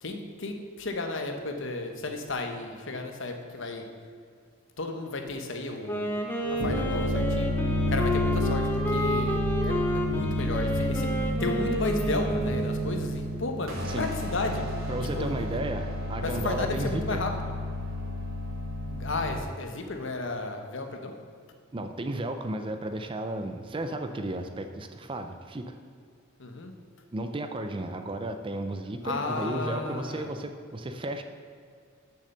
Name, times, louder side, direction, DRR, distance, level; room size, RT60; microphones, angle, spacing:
voice 1, 0.0-3.8 4.8-6.0 6.4-7.5 7.9-15.3 16.2-17.3 18.9-21.1 26.4-26.7 29.0-30.3, left 2 dB, 60° left, 5 dB, 1.0 m, -33 dB
Wind instrument woodwind instrument, 5.8-12.9, equal, 10° left, 0.8 m, -31 dB
sound 1, 6.5-19.4, left 1 dB, 90° right, 1.6 m, -30 dB
voice 2, 14.9-17.2 21.7-25.8 27.1-31.2, right 1 dB, 25° right, 7 dB, 0.4 m, -34 dB
6.7 x 6.6 x 6.6 m, 2.2 s
head